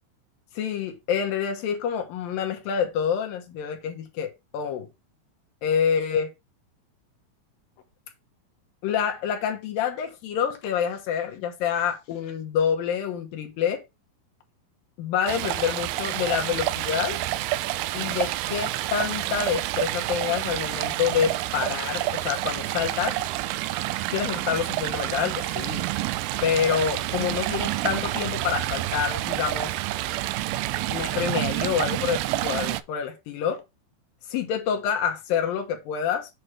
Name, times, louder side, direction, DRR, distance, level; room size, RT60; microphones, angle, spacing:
voice 1, 0.5-4.9 5.6-6.3 8.8-13.8 15.0-17.2 17.9-23.2 24.1-25.9 26.4-29.7 30.9-33.6 34.3-36.3, left 8 dB, 75° left, 2.8 m, -27 dB
Stream, 15.3-32.8, right 16 dB, 90° right, 2.4 m, -28 dB
7.7 x 3.2 x 6.0 m
omnidirectional pair, 4.3 m